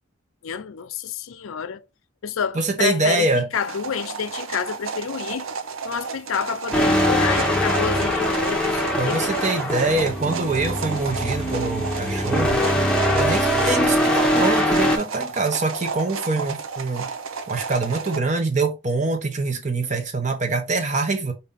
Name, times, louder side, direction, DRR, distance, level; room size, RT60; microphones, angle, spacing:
voice 1, 0.4-1.8 2.2-5.5 5.8-9.3, left 7 dB, 85° left, 0.5 m, -29 dB
voice 2, 2.5-3.5 9.0-12.6 13.1-17.1 17.5-21.3, right 3 dB, 35° right, 0.9 m, -24 dB
sound 1, 3.5-18.2, right 5 dB, 85° right, 0.7 m, -33 dB
sound 2, 6.7-15.0, equal, 5° left, 0.9 m, -22 dB
5.3 x 2.8 x 3.6 m
head